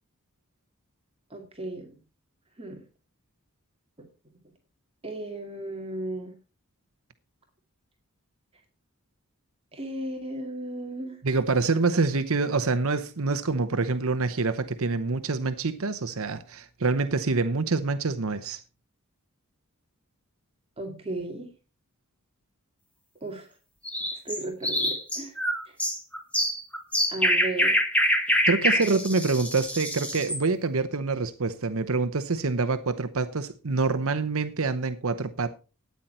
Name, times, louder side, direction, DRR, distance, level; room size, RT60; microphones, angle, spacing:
voice 1, 1.3-2.0 2.6-2.8 4.0-4.1 5.0-6.3 9.7-11.2 20.8-21.5 23.2-23.5 24.1-25.4 25.7-25.8 27.1-27.8 28.8-29.0, right 2 dB, 25° right, 2.0 m, -35 dB
voice 2, 11.2-18.6 28.5-35.5, right 3 dB, 65° right, 0.8 m, -26 dB
sound 1, 23.8-30.4, equal, 5° left, 2.0 m, -25 dB
13.0 x 9.4 x 4.3 m
head